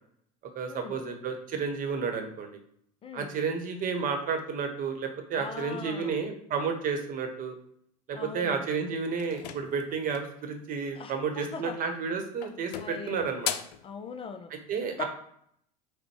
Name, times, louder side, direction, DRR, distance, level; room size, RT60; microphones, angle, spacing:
voice 1, 0.5-2.6 3.1-7.5 8.1-13.5 14.5-15.0, right 5 dB, 40° right, 5 dB, 1.0 m, -31 dB
voice 2, 5.4-6.1 8.1-8.6 11.0-11.8 12.8-13.2 13.8-14.5 15.0-15.1, left 6 dB, 25° left, 7 dB, 0.5 m, -39 dB
sound 1, 9.2-10.4 11.7-12.1 12.4-13.9, left 10 dB, 80° left, 0.4 m, -37 dB
5.1 x 2.2 x 4.4 m, 0.69 s
hypercardioid pair, 85°, 20 cm